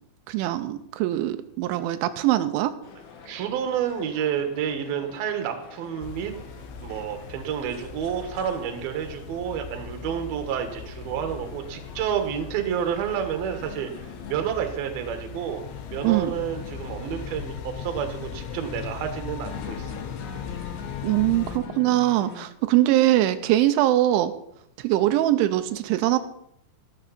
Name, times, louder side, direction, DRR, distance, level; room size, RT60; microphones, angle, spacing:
voice 1, 0.3-2.7 16.0-16.3 21.0-24.3 24.8-26.2, right 14 dB, 90° right, 9 dB, 3.1 m, -22 dB
sound 1, 2.8-22.5, left 6 dB, 60° left, 2.0 m, -44 dB
voice 2, 3.3-6.3 6.8-13.9 14.3-15.6 15.9-19.9, right 8 dB, 65° right, 6 dB, 3.0 m, -29 dB
sound 2, 6.0-21.6, left 6 dB, 80° left, 3.3 m, -39 dB
13.5 x 13.0 x 4.2 m, 0.72 s
omnidirectional pair, 5.4 m